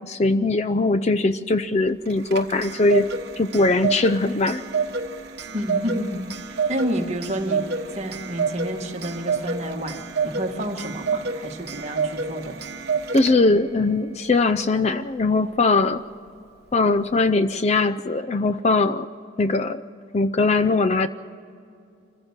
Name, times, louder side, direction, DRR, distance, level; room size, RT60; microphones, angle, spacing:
voice 1, 0.0-3.1 3.4-4.6 13.1-16.0 16.7-19.1 19.4-19.8 20.1-21.1, left 3 dB, 35° left, 13 dB, 0.4 m, -20 dB
Clock, 2.1-13.7, right 5 dB, 55° right, 1.2 m, -29 dB
voice 2, 5.5-7.6 8.0-10.0 10.2-12.6, equal, 35° right, 2 dB, 1.8 m, -29 dB
25.5 x 15.0 x 7.4 m, 2.5 s
head